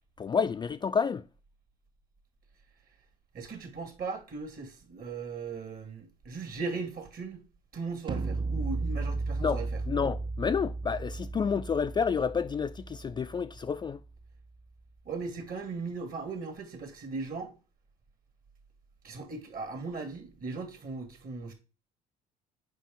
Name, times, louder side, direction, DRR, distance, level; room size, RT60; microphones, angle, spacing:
voice 1, 0.2-1.2 9.4-9.6 9.9-14.0, left 6 dB, 20° left, 0.3 m, -29 dB
voice 2, 3.3-7.5 7.7-9.8 15.1-17.5 19.0-21.5, right 4 dB, 45° right, 2.1 m, -38 dB
sound 1, 8.1-14.1, right 3 dB, 25° right, 0.7 m, -35 dB
7.5 x 4.9 x 3.7 m
hypercardioid pair, 60°, 20 cm